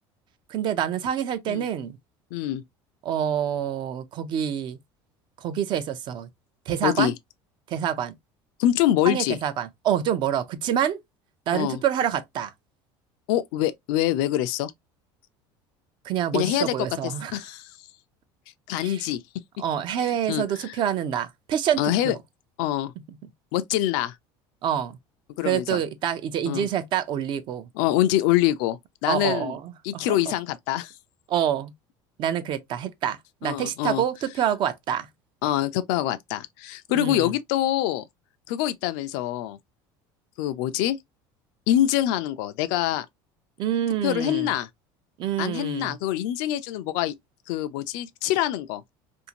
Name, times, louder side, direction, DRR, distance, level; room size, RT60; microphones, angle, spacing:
voice 1, 0.5-2.0 3.0-4.8 5.4-6.3 6.7-7.1 7.7-8.1 9.0-11.0 11.5-12.5 16.0-17.4 18.8-19.1 19.6-22.2 24.6-25.0 25.4-27.7 29.1-30.2 31.3-31.7 32.2-35.1 36.9-37.3 43.6-44.5 45.2-46.0, right 9 dB, 45° right, 0.5 m, -27 dB
voice 2, 2.3-2.6 6.8-7.1 8.6-9.4 11.5-11.8 13.3-14.7 16.3-16.7 17.0-17.7 18.7-19.2 20.0-20.7 21.8-22.2 22.6-22.9 23.5-24.2 25.4-25.8 26.5-26.7 27.8-29.6 29.8-30.9 33.4-34.0 35.4-38.0 38.5-39.6 40.4-41.0 41.7-43.1 44.0-44.7 45.4-47.1 47.5-48.8, left 13 dB, 80° left, 0.4 m, -25 dB
2.6 x 2.5 x 2.7 m
cardioid pair, 130°, 11 cm